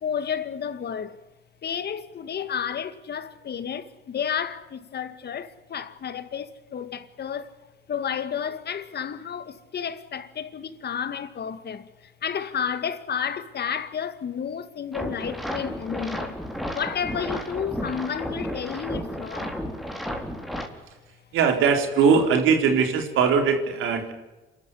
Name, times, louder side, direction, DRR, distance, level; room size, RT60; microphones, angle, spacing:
voice 1, 0.0-1.1 1.6-3.8 4.1-4.6 4.9-6.5 6.7-7.4 7.9-9.4 9.7-11.8 12.2-16.3 16.7-19.5, left 7 dB, 55° left, 2.0 m, -31 dB
sound 1, 14.9-20.7, equal, ahead, 4.2 m, -33 dB
voice 2, 21.3-24.1, right 6 dB, 85° right, 4.1 m, -20 dB
28.0 x 13.5 x 9.8 m
cardioid pair, 90°, 20 cm